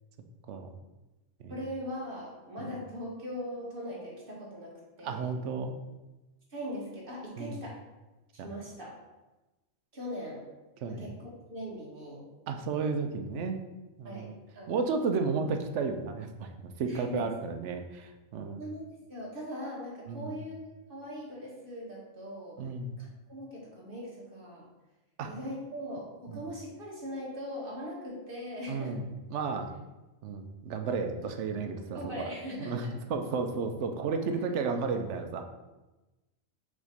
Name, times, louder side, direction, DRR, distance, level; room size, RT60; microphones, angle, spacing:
voice 1, 1.5-4.7 5.0-5.3 6.5-7.8 8.4-9.0 9.9-10.4 10.9-12.2 14.0-14.3 14.6-14.8 16.9-17.2 18.6-22.6 23.0-24.7 25.2-29.0 31.9-32.9, equal, 50° right, -4 dB, 1.9 m, -40 dB
voice 2, 5.0-5.7 7.4-7.6 8.4-8.5 10.8-11.1 12.5-13.6 14.0-14.3 14.7-18.6 20.1-20.4 22.6-22.9 25.2-25.3 26.3-26.4 28.7-29.7 30.2-32.3 32.6-35.4, right 4 dB, 90° right, 6 dB, 1.0 m, -33 dB
5.2 x 3.6 x 5.1 m, 1.1 s
omnidirectional pair, 1.2 m